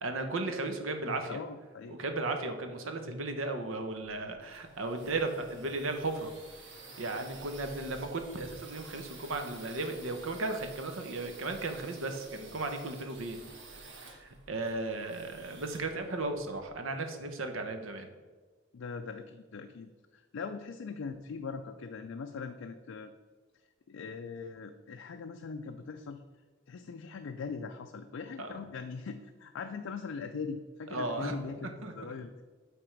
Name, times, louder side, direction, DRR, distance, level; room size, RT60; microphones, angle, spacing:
voice 1, 0.0-1.4 1.9-6.3 7.0-13.4 13.8-18.1 28.4-28.5 30.9-31.9, right 2 dB, 85° right, 6 dB, 0.9 m, -35 dB
voice 2, 1.0-2.0 18.7-23.1 23.9-26.2 26.7-32.4, left 5 dB, 80° left, 6 dB, 0.4 m, -41 dB
sound 1, 4.0-16.8, right 3 dB, 70° right, 1.2 m, -51 dB
8.8 x 3.5 x 4.5 m, 1.4 s
head